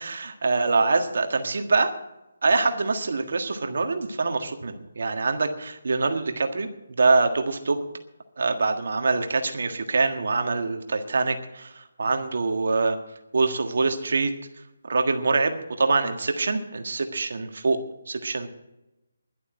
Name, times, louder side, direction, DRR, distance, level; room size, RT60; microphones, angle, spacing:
voice 1, 0.0-1.9 2.4-6.7 7.0-7.8 8.4-13.0 13.3-14.3 14.9-17.8 18.1-18.5, right 3 dB, 65° right, 6 dB, 1.6 m, -24 dB
11.5 x 8.4 x 9.8 m, 0.95 s
hypercardioid pair, 165°, 0 cm